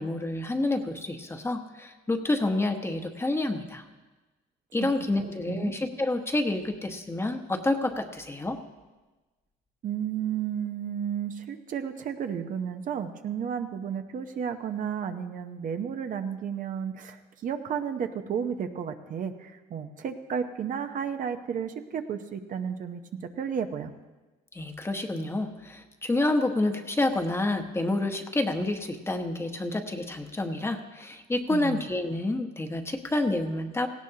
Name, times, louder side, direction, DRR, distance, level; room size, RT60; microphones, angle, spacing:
voice 1, 0.0-3.8 4.7-8.6 24.5-33.9, left 2 dB, 15° left, 6 dB, 1.1 m, -28 dB
voice 2, 9.8-23.9 31.5-31.9, right 7 dB, 50° right, 7 dB, 0.8 m, -32 dB
18.0 x 16.0 x 2.9 m, 1.2 s
cardioid pair, 110°, 17 cm